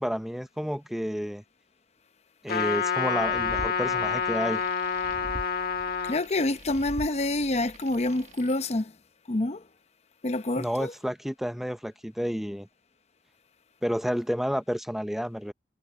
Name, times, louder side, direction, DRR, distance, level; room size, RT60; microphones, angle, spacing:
voice 1, 0.0-1.4 2.4-4.6 10.6-12.7 13.8-15.5, equal, ahead, 0.6 m, -30 dB
Trumpet, 2.5-6.2, left 6 dB, 55° left, 1.3 m, -28 dB
sound 1, 3.1-8.6, right 1 dB, 40° right, 1.2 m, -43 dB
voice 2, 6.0-8.9 9.3-9.6 10.2-10.9, left 2 dB, 40° left, 0.8 m, -27 dB
head